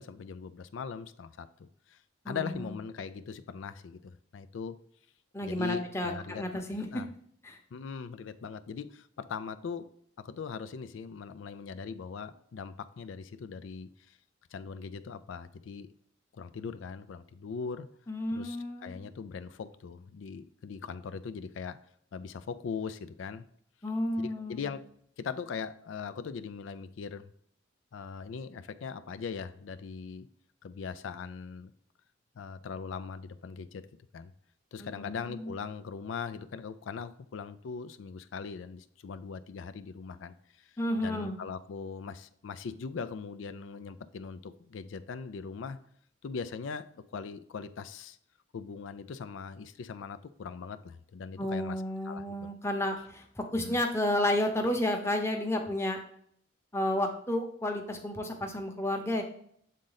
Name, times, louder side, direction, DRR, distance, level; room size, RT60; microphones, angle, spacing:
voice 1, 0.0-2.0 2.3-4.8 5.4-6.6 6.9-7.1 7.7-9.9 10.2-14.2 14.5-15.9 16.3-17.9 18.3-21.8 22.1-23.4 24.2-24.9 25.2-27.3 27.9-30.3 30.6-31.7 32.4-33.9 34.1-34.3 34.7-45.8 46.2-48.2 48.5-52.5 53.6-53.8, left 5 dB, 85° left, 11 dB, 0.4 m, -40 dB
voice 2, 2.2-2.7 5.3-6.9 7.4-7.6 18.1-19.0 23.8-24.7 34.8-35.5 40.8-41.4 51.4-56.0 56.7-59.2, left 1 dB, 15° left, 2 dB, 0.8 m, -31 dB
7.5 x 3.8 x 3.9 m, 0.66 s
head